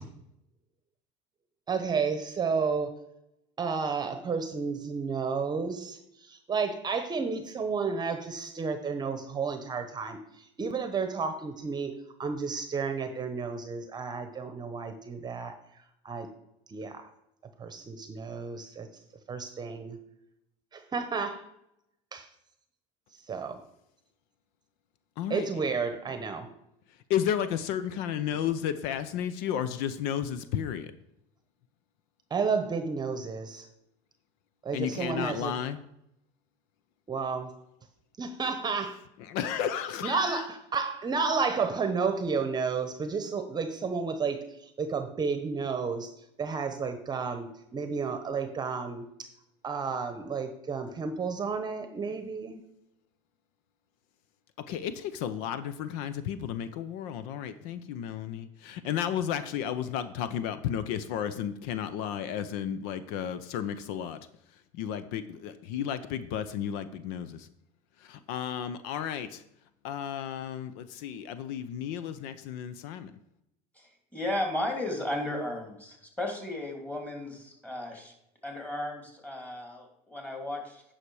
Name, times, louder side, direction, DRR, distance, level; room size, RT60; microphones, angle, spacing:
voice 1, 1.7-2.9 3.6-11.9 12.2-15.5 16.0-16.3 16.7-17.0 17.6-18.9 19.3-20.0 20.7-21.4 22.1-22.3 23.3-23.6 25.3-26.5 32.3-33.7 34.6-35.5 37.1-37.5 38.2-39.0 40.0-46.1 46.4-49.3 49.6-52.6, right 5 dB, 25° right, 8 dB, 0.9 m, -31 dB
voice 2, 25.2-25.5 27.1-30.9 34.7-35.8 39.2-40.4 54.6-64.2 64.7-67.5 68.0-69.4 69.8-73.1, left 9 dB, 75° left, 13 dB, 0.7 m, -33 dB
voice 3, 73.8-78.1 78.4-80.8, left 1 dB, 10° left, 1 dB, 2.8 m, -34 dB
9.8 x 5.8 x 4.8 m, 0.82 s
supercardioid pair, 110°, 16 cm